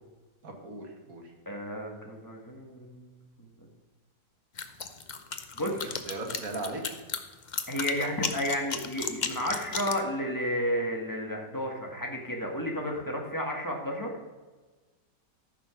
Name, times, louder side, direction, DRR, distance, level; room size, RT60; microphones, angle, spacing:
voice 1, 0.4-1.3 5.8-6.8, right 2 dB, 50° right, 1 dB, 2.1 m, -38 dB
voice 2, 1.4-3.7 5.5-5.8 7.7-14.1, equal, 10° left, 0 dB, 1.4 m, -32 dB
sound 1, 4.6-10.0, left 5 dB, 90° left, 0.4 m, -34 dB
14.0 x 6.1 x 5.8 m, 1.3 s
omnidirectional pair, 1.9 m